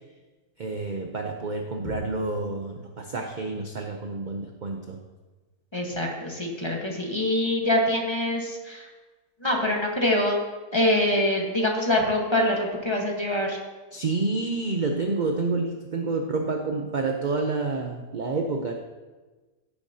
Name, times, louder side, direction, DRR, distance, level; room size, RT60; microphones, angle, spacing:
voice 1, 0.6-5.0 13.9-18.7, right 3 dB, 50° right, 3 dB, 0.6 m, -29 dB
voice 2, 5.7-8.9 9.4-10.4 10.7-13.6, left 1 dB, 20° left, -1 dB, 1.2 m, -24 dB
15.5 x 6.9 x 2.8 m, 1.3 s
omnidirectional pair, 1.6 m